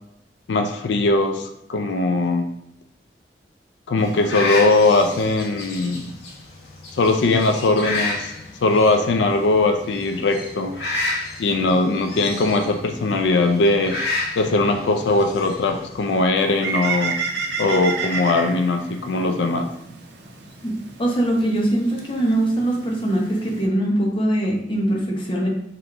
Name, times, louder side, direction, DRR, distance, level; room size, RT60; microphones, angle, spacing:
voice 1, 0.5-2.5 3.9-6.2 6.9-8.3 8.6-10.7 11.4-14.0 14.4-17.2 17.6-19.7, left 2 dB, 90° left, 5 dB, 0.4 m, -20 dB
sound 1, 4.0-16.3, left 2 dB, 70° left, 0.9 m, -32 dB
Bird, 16.4-23.7, right 5 dB, 80° right, 0.7 m, -31 dB
voice 2, 20.6-25.5, right 1 dB, 30° left, -1 dB, 0.8 m, -22 dB
3.7 x 3.0 x 3.5 m, 0.78 s
head